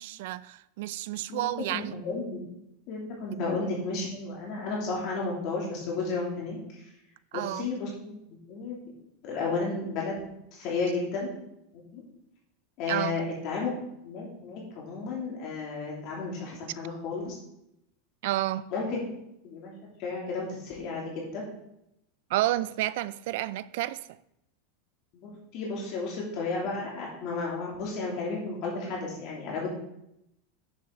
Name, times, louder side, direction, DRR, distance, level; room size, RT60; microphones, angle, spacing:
voice 1, 0.0-2.0 3.3-3.4 7.3-7.7 12.9-13.2 18.2-18.7 22.3-24.0, right 15 dB, 70° right, 0.4 m, -30 dB
voice 2, 1.7-2.4 2.9-6.9 7.3-8.8 9.2-10.2 10.5-11.3 11.7-12.0 12.8-13.7 14.0-17.3 18.7-19.0 19.4-19.7 20.0-21.4 25.1-29.7, left 3 dB, 50° left, 2.9 m, -33 dB
9.6 x 7.3 x 3.9 m
supercardioid pair, 140°, 0 cm